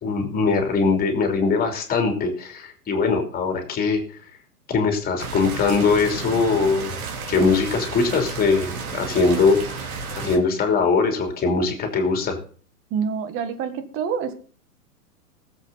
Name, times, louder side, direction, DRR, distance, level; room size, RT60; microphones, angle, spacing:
voice 1, 0.0-4.0 4.7-6.9 7.3-9.7 10.1-12.4, left 4 dB, 20° left, 4 dB, 3.1 m, -21 dB
sound 1, 5.2-10.4, right 4 dB, 60° right, 3.5 m, -32 dB
voice 2, 12.9-14.3, right 6 dB, 25° right, 9 dB, 1.6 m, -27 dB
19.5 x 8.0 x 4.0 m, 0.42 s
hypercardioid pair, 125°, 47 cm